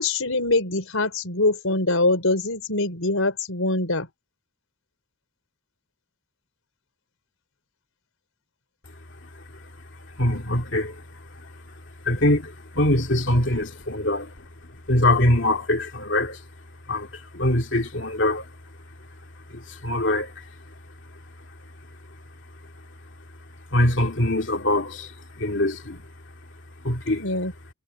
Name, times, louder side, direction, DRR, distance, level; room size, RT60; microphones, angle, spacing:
voice 1, 0.0-4.1 27.2-27.5, left 2 dB, 85° left, 4.4 m, -23 dB
voice 2, 10.1-11.0 11.3-11.5 12.0-14.5 14.7-16.4 16.9-18.5 19.5-20.4 23.7-26.1 26.8-27.2, left 1 dB, 60° left, 2.6 m, -23 dB
head